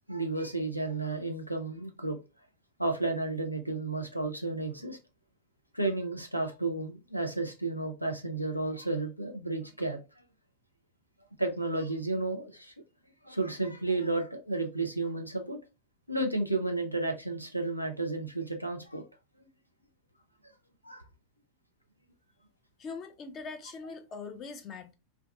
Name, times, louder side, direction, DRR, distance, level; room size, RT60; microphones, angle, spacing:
voice 1, 0.1-2.2 2.8-5.0 5.7-10.0 11.4-12.7 13.2-15.6 16.1-19.0 20.8-21.0, right 2 dB, 90° left, 0.5 m, -32 dB
voice 2, 22.8-24.9, left 4 dB, 30° left, 0.4 m, -42 dB
2.5 x 2.2 x 2.2 m
figure-of-eight pair, 90°, 0 cm